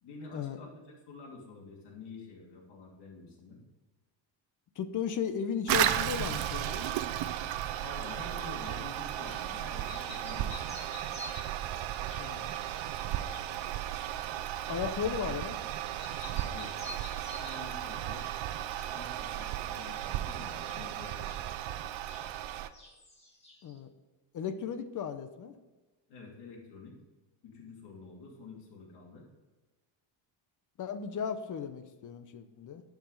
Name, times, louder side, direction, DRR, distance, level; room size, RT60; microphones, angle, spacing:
voice 1, 0.0-3.6 7.8-10.9 16.2-16.7 17.4-18.3 18.9-21.4 26.1-27.0 27.4-29.3, left 4 dB, 60° left, -3 dB, 2.9 m, -48 dB
voice 2, 4.8-6.9 12.2-12.6 14.7-15.6 23.6-23.9 24.3-25.6 30.8-32.8, left 7 dB, 40° left, 9 dB, 0.7 m, -35 dB
Toilet flush, 5.7-22.7, right 12 dB, 80° right, 0.7 m, -35 dB
sound 1, 6.5-8.8 9.2-9.5 9.8-15.7 15.9-17.8 18.1-18.9 19.2-22.5 22.7-23.8, left 1 dB, 15° left, 1.8 m, -51 dB
11.5 x 4.9 x 5.3 m, 1.2 s
cardioid pair, 175°, 46 cm